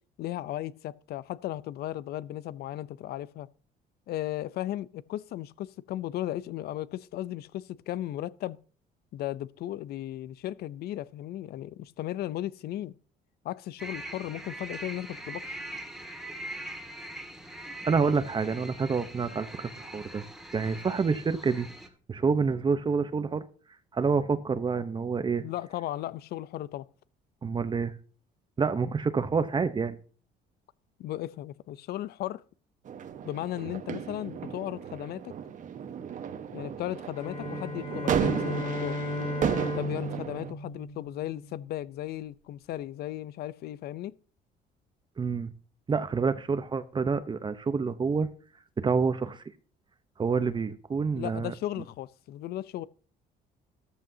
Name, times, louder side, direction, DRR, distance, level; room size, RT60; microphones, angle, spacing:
voice 1, 0.2-3.5 4.1-8.6 9.1-12.9 13.4-15.6 25.4-26.9 31.0-32.4 33.2-35.3 36.5-39.0 39.7-44.2 51.1-52.9, left 13 dB, 70° left, 0.6 m, -36 dB
sound 1, 13.8-21.9, right 1 dB, 5° right, 1.9 m, -42 dB
voice 2, 17.8-20.2 20.5-21.7 22.1-23.4 23.9-25.4 27.4-27.9 28.6-30.0 45.2-45.5 45.9-48.3 48.8-49.4 50.2-51.5, right 5 dB, 30° right, 0.9 m, -28 dB
sound 2, 32.9-40.5, right 8 dB, 50° right, 1.3 m, -34 dB
sound 3, 37.1-41.6, left 1 dB, 35° left, 4.9 m, -35 dB
14.0 x 13.0 x 2.8 m
cardioid pair, 110°, 17 cm